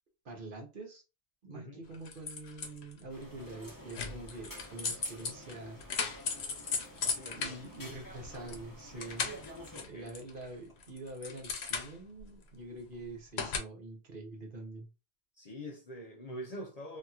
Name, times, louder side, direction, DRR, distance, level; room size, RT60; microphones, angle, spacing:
voice 1, 0.2-1.0 1.4-6.2 7.3-9.4 9.8-14.9, right 2 dB, 55° right, 1.1 m, -45 dB
voice 2, 1.5-1.9 7.0-7.6 9.7-10.1 15.4-17.0, equal, 50° left, 0.5 m, -45 dB
sound 1, 1.9-3.0 3.9-8.6 8.9-10.5 10.8-12.2 13.4-13.6, left 5 dB, 85° left, 0.9 m, -37 dB
sound 2, 3.1-9.8, equal, 20° left, 0.8 m, -50 dB
2.8 x 2.8 x 2.3 m
omnidirectional pair, 1.1 m